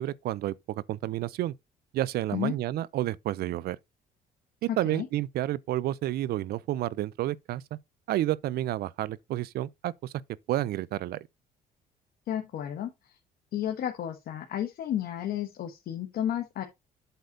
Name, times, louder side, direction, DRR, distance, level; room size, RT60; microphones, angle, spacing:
voice 1, 0.0-1.5 1.9-3.8 4.6-7.6 8.1-10.1 10.5-11.2, right 14 dB, 70° right, 0.6 m, -30 dB
voice 2, 4.7-5.1 12.3-13.2 13.5-16.6, left 10 dB, 65° left, 1.3 m, -32 dB
8.1 x 4.0 x 5.2 m
cardioid pair, 110°, 17 cm